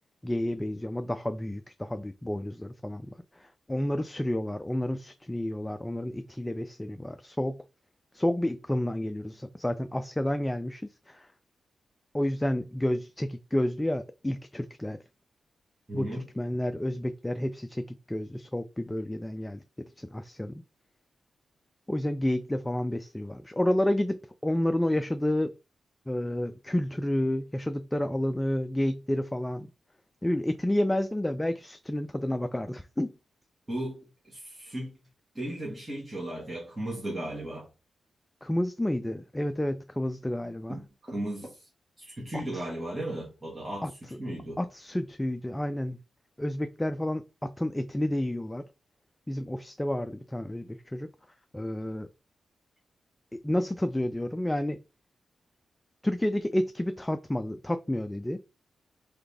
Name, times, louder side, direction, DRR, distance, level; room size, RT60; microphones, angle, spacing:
voice 1, 0.2-7.6 8.1-11.3 12.1-15.0 15.9-20.6 21.9-25.5 26.1-29.7 30.2-33.1 38.4-40.8 42.3-42.6 43.8-43.9 44.6-46.0 46.4-48.6 49.3-51.1 51.5-52.1 53.3-54.8 56.0-58.4, left 1 dB, 10° left, 0.3 m, -30 dB
voice 2, 15.9-16.2 33.7-35.0 35.3-37.7 40.7-41.7 42.0-44.6, right 1 dB, 20° right, 1.5 m, -36 dB
4.0 x 3.4 x 3.4 m
wide cardioid pair, 110°, 0 cm